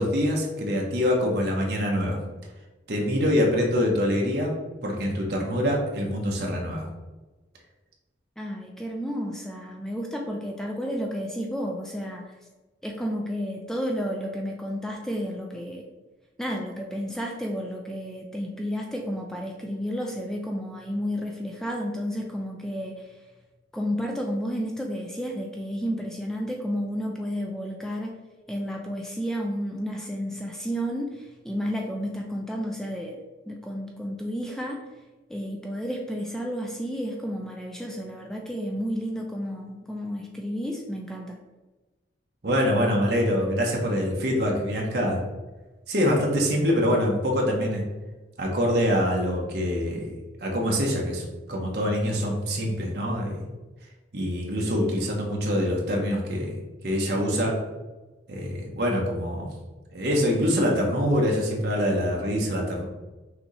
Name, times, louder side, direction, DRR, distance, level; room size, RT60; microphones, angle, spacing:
voice 1, 0.0-2.2 2.9-4.5 4.8-6.9 42.4-45.2 45.9-47.9 48.4-50.1 50.4-53.4 54.1-56.6 56.8-57.6 58.3-59.5 59.9-62.9, equal, 65° right, -1 dB, 0.9 m, -25 dB
voice 2, 8.4-12.3 12.8-15.9 16.4-23.1 23.7-28.2 28.5-33.2 33.5-34.8 35.3-41.4, equal, 5° left, 0 dB, 0.4 m, -31 dB
6.0 x 2.7 x 3.1 m, 1.2 s
head